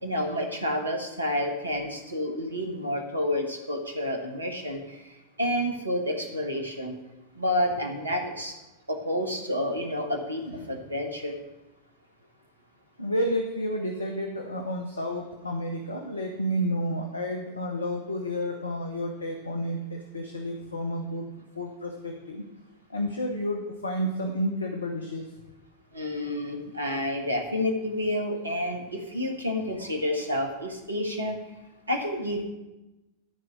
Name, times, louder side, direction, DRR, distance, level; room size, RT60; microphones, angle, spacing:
voice 1, 0.0-5.0 5.4-7.0 7.3-8.5 8.9-10.4 10.7-11.4 25.9-31.4 31.9-32.4, left 1 dB, 80° right, 3 dB, 1.5 m, -29 dB
voice 2, 13.0-21.3 21.5-22.4 22.9-25.2, equal, 75° left, 4 dB, 0.9 m, -31 dB
13.5 x 4.7 x 6.2 m, 1.0 s
figure-of-eight pair, 90°, 0 cm